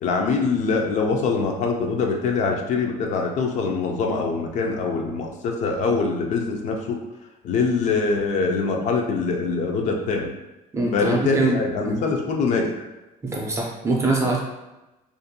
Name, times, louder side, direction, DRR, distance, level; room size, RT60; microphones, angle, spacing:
voice 1, 0.0-7.0 7.4-10.3 10.9-12.8, left 4 dB, 55° left, 2 dB, 0.4 m, -23 dB
voice 2, 10.7-11.6 11.8-12.0 13.2-14.4, right 3 dB, 20° right, -2 dB, 0.4 m, -23 dB
2.5 x 2.2 x 2.7 m, 1.0 s
cardioid pair, 150°, 15 cm